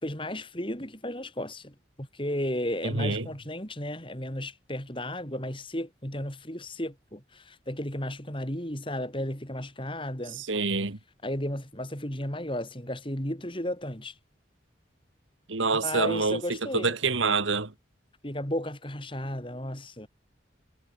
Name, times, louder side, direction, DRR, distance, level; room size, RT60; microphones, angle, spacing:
voice 1, 0.0-10.4 11.2-14.1 15.8-17.0 18.2-20.1, left 1 dB, 25° left, 5.1 m, -34 dB
voice 2, 2.8-3.3 10.5-11.0 15.5-16.4 16.7-17.7, right 4 dB, 85° right, 2.1 m, -26 dB
head